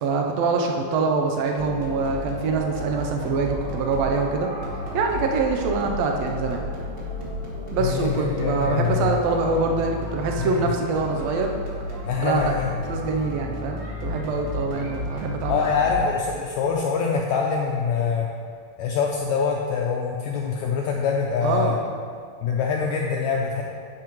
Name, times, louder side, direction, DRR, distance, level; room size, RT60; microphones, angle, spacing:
voice 1, 0.0-4.5 4.9-6.6 7.7-11.5 12.2-12.5 12.9-15.7 21.4-21.8, right 4 dB, 80° right, 2 dB, 1.5 m, -24 dB
sound 1, 1.6-16.5, left 1 dB, 30° right, 1.0 m, -33 dB
voice 2, 7.8-9.1 10.4-10.7 12.0-12.7 15.5-18.3 18.8-21.7 22.4-23.6, left 6 dB, 80° left, -1 dB, 1.7 m, -24 dB
10.5 x 8.5 x 3.1 m, 2.1 s
omnidirectional pair, 3.8 m